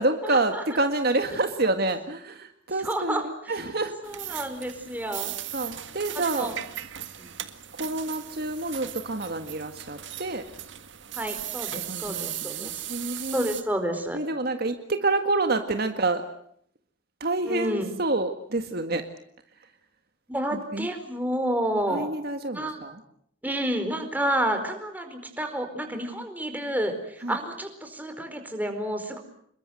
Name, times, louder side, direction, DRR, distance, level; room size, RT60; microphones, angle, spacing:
voice 1, 0.0-4.0 4.3-4.4 5.5-6.5 7.7-10.4 11.7-13.4 14.1-16.2 17.2-19.0 20.5-20.9 21.9-23.0 27.2-27.4, right 2 dB, 55° right, 7 dB, 1.9 m, -28 dB
voice 2, 2.8-3.2 4.0-5.3 6.3-6.5 7.2-7.3 11.1-12.8 13.3-14.2 17.5-17.8 20.3-22.1 22.5-22.8 23.4-29.2, right 1 dB, 10° right, 6 dB, 4.5 m, -29 dB
sound 1, 4.0-13.6, right 12 dB, 70° right, 1.9 m, -37 dB
27.5 x 22.5 x 7.8 m, 0.67 s
head